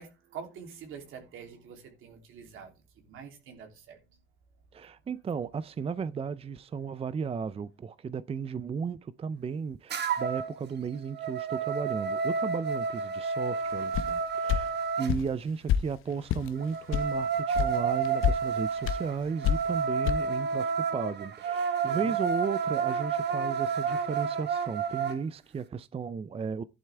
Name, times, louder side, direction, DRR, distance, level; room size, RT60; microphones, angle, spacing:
voice 1, 0.0-4.2 6.8-6.9 21.8-22.1, right 6 dB, 75° right, 3.1 m, -46 dB
voice 2, 4.7-26.6, right 6 dB, 30° right, 0.5 m, -35 dB
sound 1, 9.9-10.5 10.9-15.1 16.6-25.2, right 5 dB, 55° right, 1.3 m, -30 dB
sound 2, 13.9-14.1 14.5-14.6 15.1-15.3 15.7-15.8 16.3-16.5 16.9-17.1 17.5-17.7 18.0-18.4 18.8-19.0 19.4-19.7 20.0-20.1, left 10 dB, 80° left, 0.9 m, -26 dB
11.5 x 11.0 x 3.4 m
cardioid pair, 100°, 21 cm